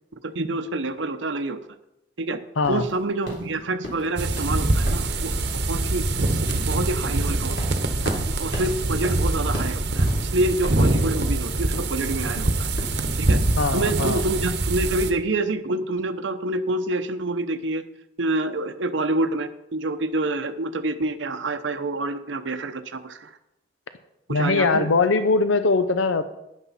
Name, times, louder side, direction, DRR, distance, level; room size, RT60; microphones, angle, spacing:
voice 1, 0.2-1.6 2.2-2.4 2.7-5.3 5.7-6.0 6.7-7.6 8.2-12.7 13.2-17.8 18.2-23.3 24.3-24.9, right 2 dB, 75° right, 8 dB, 0.8 m, -27 dB
sound 1, 2.6-14.0, left 1 dB, 60° left, 3.7 m, -38 dB
sound 2, 4.2-15.1, right 2 dB, 60° right, 1.0 m, -24 dB
voice 2, 13.6-14.2 24.3-26.2, left 3 dB, 85° left, 10 dB, 0.7 m, -21 dB
11.5 x 9.9 x 4.2 m, 0.86 s
head